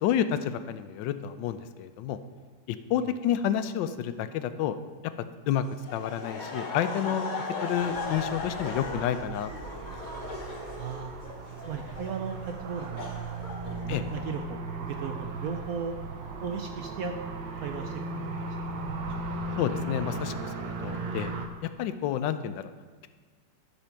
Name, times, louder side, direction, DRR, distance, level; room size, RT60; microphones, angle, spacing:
voice 1, 0.0-2.2 2.7-4.8 5.0-5.1 5.5-5.6 5.9-7.3 7.6-9.7 13.9-14.0 19.6-21.3 21.6-22.7, left 10 dB, 90° left, 11 dB, 1.3 m, -29 dB
Laughter, 5.8-14.3, left 3 dB, 40° left, 0.7 m, -38 dB
sound 1, 7.8-21.5, right 3 dB, 90° right, 1.5 m, -37 dB
voice 2, 10.8-11.1 11.7-13.2 13.6-16.0 16.4-17.2 17.6-18.8, right 6 dB, 75° right, 5 dB, 0.8 m, -36 dB
12.0 x 4.2 x 5.8 m, 1.4 s
omnidirectional pair, 1.9 m